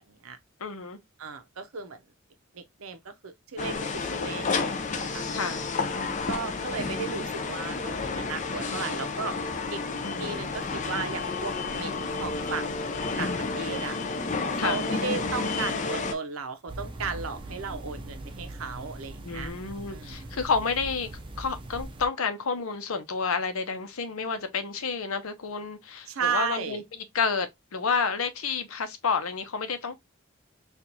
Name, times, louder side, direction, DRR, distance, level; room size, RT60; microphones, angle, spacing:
voice 1, 0.1-0.4 1.2-2.0 2.5-5.3 6.3-9.4 9.7-9.8 10.2-12.7 13.2-14.0 14.5-19.5 19.9-20.3 26.1-26.8, right 5 dB, 80° right, 0.7 m, -35 dB
voice 2, 0.6-1.0 5.3-5.6 6.0-6.3 10.0-10.4 14.6-14.8 19.2-21.1 21.4-26.8 27.1-30.0, left 5 dB, 85° left, 0.7 m, -30 dB
sound 1, 3.6-16.1, left 4 dB, 35° left, 0.5 m, -31 dB
sound 2, 16.7-22.1, right 1 dB, 25° right, 0.6 m, -40 dB
4.4 x 2.5 x 2.7 m
head